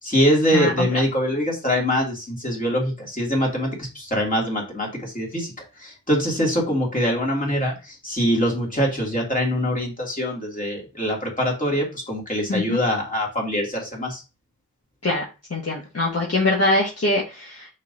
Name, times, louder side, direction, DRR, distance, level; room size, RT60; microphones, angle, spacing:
voice 1, 0.0-5.5 5.8-14.2, equal, 25° left, -3 dB, 2.7 m, -23 dB
voice 2, 0.5-0.9 12.5-12.8 15.0-15.2 15.5-17.7, left 2 dB, 45° left, -3 dB, 1.5 m, -23 dB
6.3 x 5.4 x 2.7 m, 0.29 s
wide cardioid pair, 110°, 33 cm